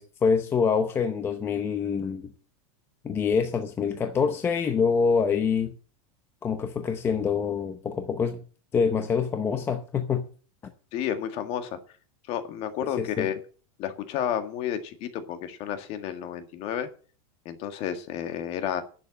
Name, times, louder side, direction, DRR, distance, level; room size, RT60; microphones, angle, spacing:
voice 1, 0.0-2.3 3.0-5.7 6.4-8.4 8.7-10.2 12.8-13.3, left 6 dB, 15° left, 0.7 m, -26 dB
voice 2, 10.9-11.8 12.3-13.4 13.8-16.9 17.5-18.8, left 9 dB, 35° left, 1.7 m, -31 dB
11.0 x 7.7 x 7.6 m
supercardioid pair, 170°, 18 cm